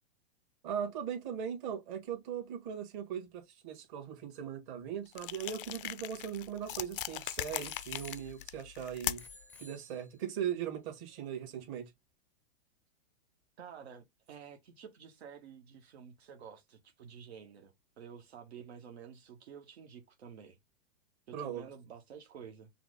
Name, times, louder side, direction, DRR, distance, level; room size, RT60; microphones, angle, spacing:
voice 1, 0.6-9.3 9.6-11.9 21.3-21.6, right 8 dB, 35° right, 1.9 m, -39 dB
sound 1, 5.1-9.4, left 14 dB, 55° left, 0.4 m, -40 dB
Bicycle bell, 5.6-7.0 7.6-8.8 9.2-10.4 11.2-11.3, left 2 dB, 5° left, 0.6 m, -57 dB
voice 2, 13.6-20.6 21.3-22.7, right 7 dB, 70° right, 1.3 m, -51 dB
5.8 x 2.2 x 4.0 m
hypercardioid pair, 150°, 33 cm